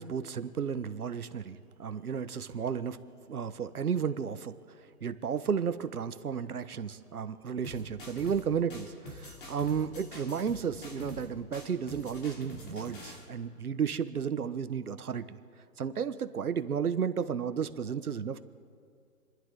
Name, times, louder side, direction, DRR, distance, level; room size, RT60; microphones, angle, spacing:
voice 1, 0.0-3.0 3.3-4.5 5.0-15.4 15.8-18.4, right 7 dB, 70° right, 11 dB, 1.2 m, -33 dB
sound 1, 7.6-8.4 8.7-11.3 11.5-13.2, equal, 35° left, 3.2 m, -45 dB
30.0 x 11.5 x 4.0 m, 2.2 s
hypercardioid pair, 180°, 46 cm